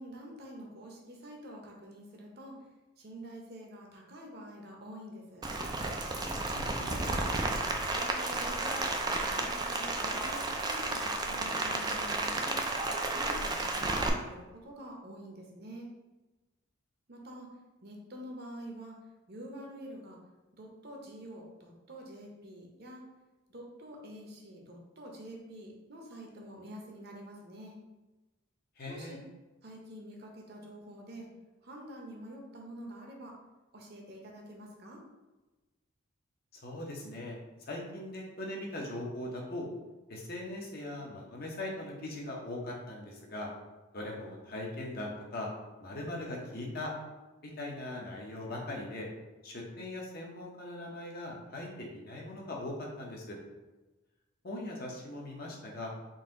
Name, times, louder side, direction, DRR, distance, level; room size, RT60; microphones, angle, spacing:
voice 1, 0.0-2.6 3.0-5.5 6.6-7.4 7.9-12.6 13.1-15.9 17.1-17.5 17.8-19.0 19.3-20.2 20.5-23.0 23.5-27.8 28.9-29.2 29.6-31.3 31.6-33.4 33.7-35.0, equal, 50° right, 0 dB, 0.8 m, -47 dB
Rain, 5.4-14.1, right 2 dB, 20° right, 0.3 m, -32 dB
voice 2, 6.5-6.9 28.8-29.3 36.6-37.4 37.7-39.7 40.1-43.5 43.9-45.5 45.8-46.9 47.4-49.1 49.4-53.4 54.4-55.9, left 1 dB, 50° left, -1 dB, 0.8 m, -40 dB
4.0 x 2.7 x 3.8 m, 1.1 s
head